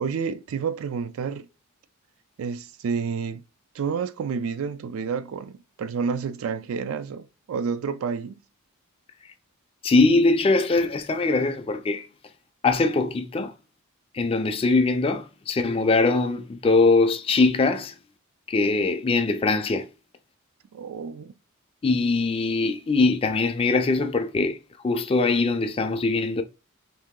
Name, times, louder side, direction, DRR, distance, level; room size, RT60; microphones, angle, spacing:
voice 1, 0.0-1.5 2.4-3.4 3.7-8.4 20.7-21.3, right 6 dB, 75° right, 0.3 m, -29 dB
voice 2, 9.8-12.1 12.6-13.5 14.1-17.9 18.5-19.9 21.8-24.6 24.8-26.4, left 3 dB, 25° left, 0.3 m, -22 dB
2.9 x 2.7 x 3.6 m
head